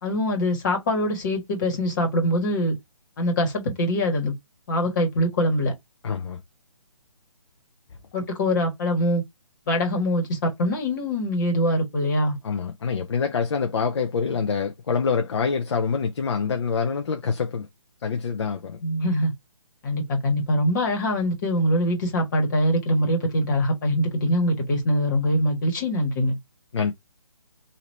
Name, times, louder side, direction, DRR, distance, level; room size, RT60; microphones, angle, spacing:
voice 1, 0.0-2.7 3.2-4.3 4.7-5.7 8.1-9.2 9.7-12.4 18.8-19.3 19.8-26.4, equal, 35° left, 1.6 m, -23 dB
voice 2, 6.0-6.4 8.2-8.3 12.4-17.7 18.0-18.8 26.7-26.9, left 5 dB, 50° left, 0.6 m, -26 dB
3.1 x 2.8 x 4.1 m
hypercardioid pair, 160°, 18 cm